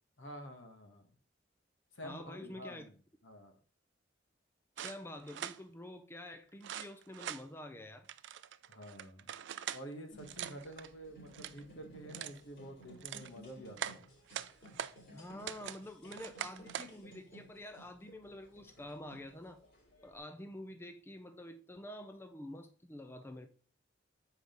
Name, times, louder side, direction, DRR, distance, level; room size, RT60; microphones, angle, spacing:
voice 1, 0.2-1.1 1.9-3.6 8.7-9.3 9.7-14.1, equal, 70° left, 1.3 m, -49 dB
voice 2, 2.0-2.9 4.8-8.1 15.1-19.6 20.0-23.5, left 1 dB, 15° left, 0.5 m, -48 dB
sound 1, 4.8-5.6 6.6-7.4 8.1-9.8 10.2-10.9 11.2-11.6 12.1-12.4 12.8-13.3 13.8-14.9 15.4-15.8 16.1-16.9, right 10 dB, 65° right, 0.4 m, -43 dB
sound 2, 10.1-20.2, equal, 55° left, 3.0 m, -57 dB
7.1 x 4.9 x 3.8 m
head